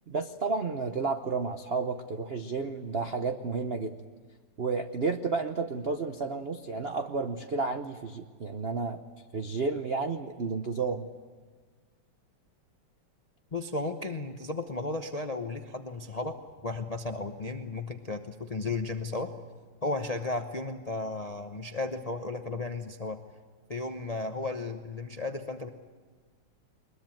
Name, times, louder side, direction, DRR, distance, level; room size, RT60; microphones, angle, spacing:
voice 1, 0.1-4.0 4.6-9.0 9.3-11.1, right 4 dB, 85° right, 7 dB, 0.5 m, -31 dB
voice 2, 13.5-19.3 19.8-23.2 23.7-25.7, left 3 dB, 70° left, 6 dB, 0.3 m, -34 dB
21.5 x 21.5 x 9.1 m, 1.5 s
omnidirectional pair, 2.4 m